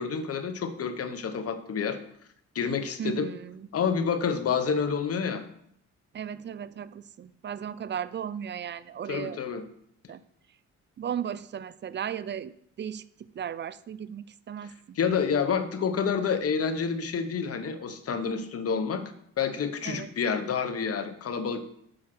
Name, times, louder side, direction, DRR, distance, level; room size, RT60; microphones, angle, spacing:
voice 1, 0.0-2.0 2.5-3.3 3.7-5.4 9.1-9.6 15.0-19.0 19.4-21.7, left 6 dB, 50° left, 9 dB, 1.1 m, -28 dB
voice 2, 3.0-3.6 6.1-9.4 10.1-10.2 11.0-12.5 12.8-13.0 13.3-15.0 19.8-20.1, right 8 dB, 35° right, 16 dB, 0.5 m, -35 dB
7.9 x 5.7 x 6.1 m, 0.70 s
cardioid pair, 90°, 30 cm